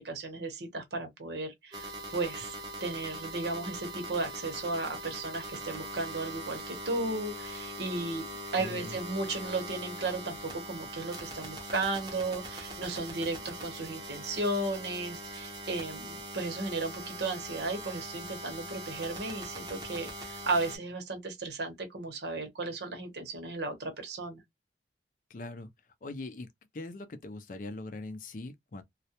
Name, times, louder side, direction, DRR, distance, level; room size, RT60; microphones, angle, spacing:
voice 1, 0.0-8.2 8.5-24.4, right 2 dB, 75° right, 0.9 m, -35 dB
sound 1, 1.7-20.8, right 1 dB, 25° right, 0.6 m, -42 dB
voice 2, 8.6-9.0 25.3-25.7 26.0-26.5 26.7-28.8, left 2 dB, 50° left, 0.4 m, -41 dB
2.3 x 2.1 x 2.8 m
head